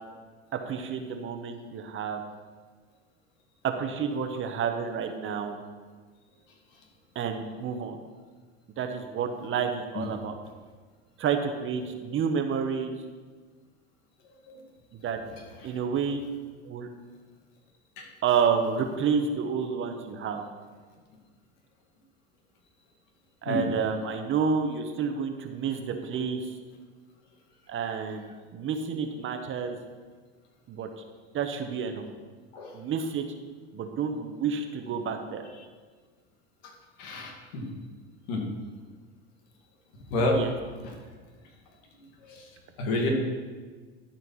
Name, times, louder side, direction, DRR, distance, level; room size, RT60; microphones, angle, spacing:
voice 1, 0.7-2.2 3.6-5.6 7.1-8.0 8.8-10.4 11.2-12.9 14.9-15.2 15.6-16.2 16.6-16.9 18.2-20.4 23.4-26.5 27.7-28.2 28.5-29.8 30.7-30.9 31.3-32.1 32.7-33.2 33.7-35.5 40.3-40.5, right 6 dB, 40° right, 6 dB, 1.1 m, -29 dB
voice 2, 37.0-37.7 38.3-38.4 40.1-40.4 40.8-40.9 42.2-42.5 42.8-43.1, left 2 dB, 70° left, 1 dB, 2.2 m, -29 dB
12.5 x 4.4 x 5.6 m, 1.5 s
supercardioid pair, 100°, 30 cm